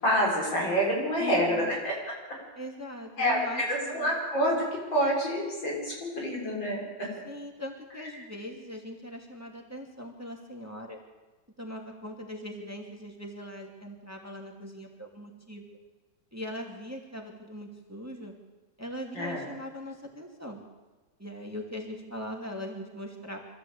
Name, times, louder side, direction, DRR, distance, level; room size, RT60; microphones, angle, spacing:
voice 1, 0.0-2.0 3.2-7.1 19.1-19.4, equal, 85° left, -3 dB, 7.2 m, -27 dB
voice 2, 1.2-1.7 2.6-4.1 7.2-11.0 11.6-15.8 16.3-18.3 18.8-20.6 21.2-23.4, equal, 10° right, 1 dB, 2.5 m, -40 dB
24.0 x 15.0 x 8.5 m, 1.2 s
omnidirectional pair, 2.0 m